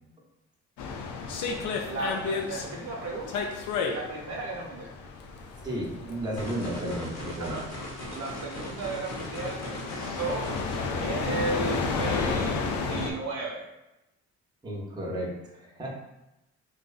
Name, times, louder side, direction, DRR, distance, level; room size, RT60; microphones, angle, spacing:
sound 1, 0.8-13.1, left 4 dB, 75° left, 0.5 m, -33 dB
voice 1, 1.8-3.5 3.9-4.9 7.4-7.6 8.1-10.4 11.0-13.6, right 3 dB, 60° right, -1 dB, 0.6 m, -34 dB
voice 2, 5.6-7.6 14.6-15.9, equal, 15° right, -3 dB, 0.6 m, -33 dB
sound 2, 6.4-10.8, equal, 60° left, 0.9 m, -39 dB
2.6 x 2.0 x 2.3 m, 0.93 s
cardioid pair, 90°, 30 cm